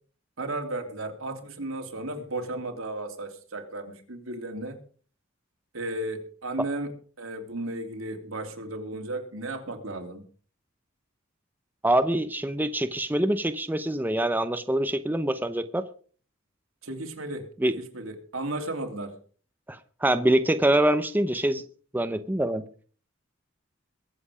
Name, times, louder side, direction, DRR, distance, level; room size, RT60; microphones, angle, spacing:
voice 1, 0.4-4.8 5.7-6.9 7.2-10.2 16.8-19.2, right 2 dB, 80° right, 4 dB, 3.0 m, -34 dB
voice 2, 11.8-15.8 17.6-17.7 19.7-21.6 21.9-22.6, right 1 dB, 10° right, 9 dB, 0.8 m, -25 dB
22.5 x 7.9 x 5.0 m, 0.43 s
head